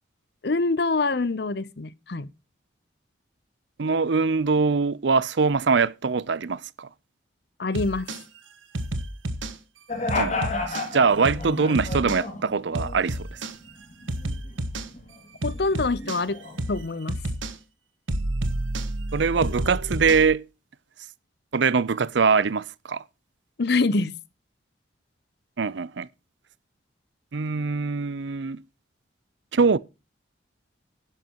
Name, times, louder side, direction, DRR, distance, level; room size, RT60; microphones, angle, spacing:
voice 1, 0.4-2.3 7.6-8.1 15.4-16.4 16.7-17.2 23.6-24.1, left 3 dB, 55° left, 0.7 m, -25 dB
voice 2, 3.8-6.9 10.1-10.4 10.7-13.4 19.1-20.4 21.5-23.0 25.6-26.1 27.3-28.6 29.5-29.8, right 5 dB, 65° right, 0.5 m, -23 dB
sound 1, 7.7-8.2 8.7-9.5 10.1-10.9 11.2-11.5 11.7-12.2 12.7-13.5 14.1-14.9 15.4-16.2 16.6-16.8 17.1-17.5 18.1-20.3, right 1 dB, 90° right, 1.4 m, -30 dB
sound 2, 9.9-13.2 13.6-15.2 15.5-17.0, left 3 dB, 35° left, 2.6 m, -32 dB
11.5 x 10.5 x 3.0 m
head